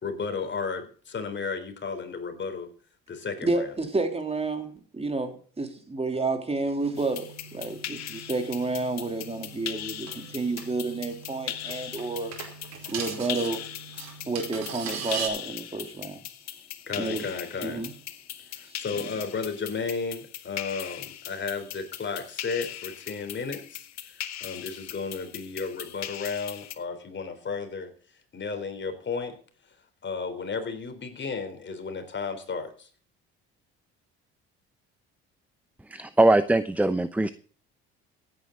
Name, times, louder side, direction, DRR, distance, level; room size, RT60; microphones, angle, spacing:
voice 1, 0.0-2.7 3.1-3.7 16.9-17.9 18.6-27.9 28.3-29.4 30.0-32.9, left 5 dB, 40° left, 3.8 m, -33 dB
voice 2, 3.4-12.3 12.9-13.7 14.3-16.2 16.9-17.2 17.6-17.9, right 3 dB, 20° right, 3.3 m, -30 dB
sound 1, 6.8-15.3, right 6 dB, 60° right, 4.8 m, -40 dB
sound 2, 7.0-26.8, left 12 dB, 60° left, 1.5 m, -39 dB
voice 3, 35.9-37.3, right 2 dB, 5° right, 0.8 m, -21 dB
16.0 x 9.6 x 3.9 m
supercardioid pair, 80°, 30 cm